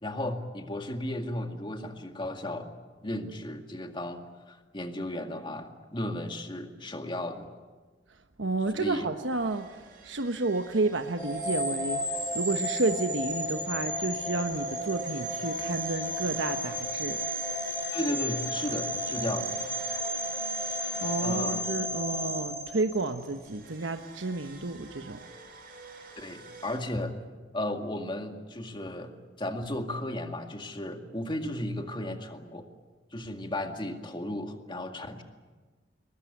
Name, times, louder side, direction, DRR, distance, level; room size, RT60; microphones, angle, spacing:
voice 1, 0.0-2.7 3.0-7.5 8.7-9.1 17.9-19.6 21.2-21.7 26.2-27.2 27.5-29.1 29.4-32.7 33.1-35.2, left 1 dB, 25° left, 5 dB, 2.1 m, -34 dB
voice 2, 8.4-9.7 10.0-12.0 12.3-17.2 21.0-25.2, right 3 dB, 90° right, 7 dB, 1.2 m, -31 dB
sound 1, 9.3-26.8, right 3 dB, 50° right, 6.5 m, -49 dB
sound 2, 11.2-23.3, equal, 5° left, 5.1 m, -33 dB
22.0 x 21.0 x 9.9 m, 1.3 s
head